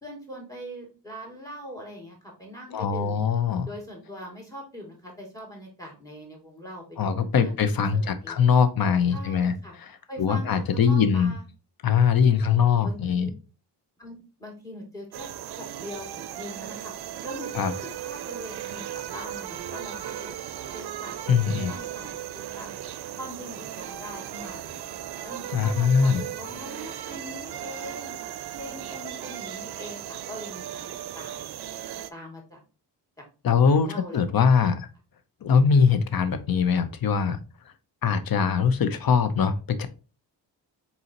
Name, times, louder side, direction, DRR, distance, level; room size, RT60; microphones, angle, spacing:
voice 1, 0.0-3.2 3.7-8.4 9.1-9.7 10.1-11.4 12.3-13.3 14.0-16.9 17.2-18.8 19.1-20.4 20.7-22.7 23.1-24.8 25.2-28.2 28.6-30.9 31.1-31.5 32.1-32.6 33.6-34.2, equal, 10° left, 0 dB, 2.4 m, -42 dB
voice 2, 2.7-3.7 7.0-9.9 10.2-11.3 11.8-13.3 17.5-17.7 21.3-21.7 25.5-26.2 33.4-34.9 35.4-37.4 38.0-39.9, left 6 dB, 55° left, 12 dB, 0.7 m, -22 dB
sound 1, 15.1-32.1, right 11 dB, 65° right, 0.5 m, -37 dB
4.1 x 3.8 x 2.8 m, 0.33 s
cardioid pair, 70°, 42 cm